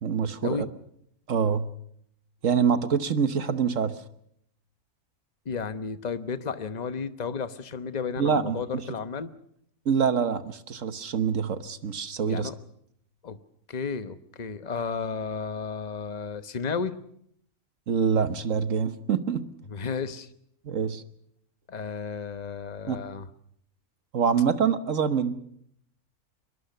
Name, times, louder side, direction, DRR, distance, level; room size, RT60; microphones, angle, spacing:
voice 1, 0.0-0.7 1.3-1.7 2.4-3.9 8.2-8.8 9.8-12.5 17.9-19.4 20.6-21.0 22.9-23.0 24.1-25.3, right 6 dB, 60° right, 11 dB, 1.5 m, -25 dB
voice 2, 5.4-9.3 12.3-12.6 13.2-13.4 13.7-17.0 19.7-20.3 21.7-23.3, left 5 dB, 30° left, 11 dB, 1.0 m, -33 dB
22.5 x 22.5 x 6.7 m, 0.69 s
omnidirectional pair, 1.6 m